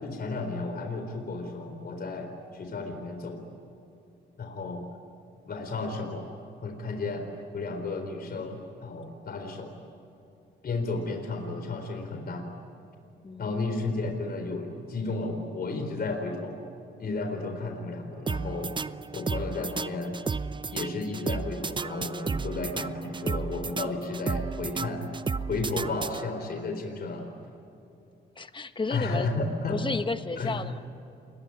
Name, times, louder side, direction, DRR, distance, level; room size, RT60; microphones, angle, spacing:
voice 1, 0.0-3.4 4.4-4.8 5.5-6.3 6.6-7.3 7.5-9.7 10.6-12.5 13.4-16.6 17.0-18.7 19.1-20.2 20.7-25.1 25.5-27.3 28.9-29.8 30.4-30.6, left 3 dB, 50° left, 5 dB, 4.1 m, -33 dB
voice 2, 13.2-13.6 28.4-29.3 29.7-30.8, left 3 dB, 25° left, 9 dB, 1.4 m, -32 dB
sound 1, 18.3-26.6, right 4 dB, 25° right, 0.7 m, -33 dB
28.5 x 21.5 x 9.8 m, 2.7 s
cardioid pair, 90°, 20 cm